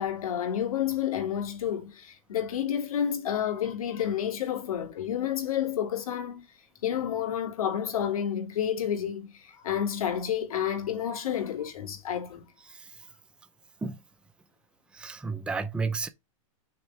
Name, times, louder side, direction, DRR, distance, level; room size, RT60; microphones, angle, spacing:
voice 1, 0.0-6.4 6.8-12.4, left 9 dB, 85° left, 3.1 m, -30 dB
voice 2, 14.9-16.1, right 4 dB, 5° right, 0.6 m, -32 dB
6.6 x 3.8 x 5.8 m
supercardioid pair, 155°, 18 cm